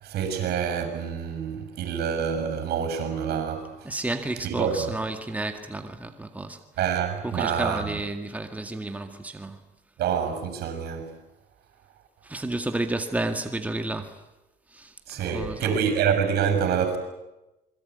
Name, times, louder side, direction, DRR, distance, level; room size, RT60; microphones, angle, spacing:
voice 1, 0.0-3.9 4.4-4.9 6.8-7.9 10.0-11.2 15.1-17.0, right 7 dB, 70° right, 6.9 m, -27 dB
voice 2, 3.8-6.6 7.2-9.6 12.2-14.2 14.7-14.9 15.3-15.8, right 2 dB, 10° right, 2.0 m, -31 dB
27.5 x 22.5 x 9.5 m
cardioid pair, 110°, 17 cm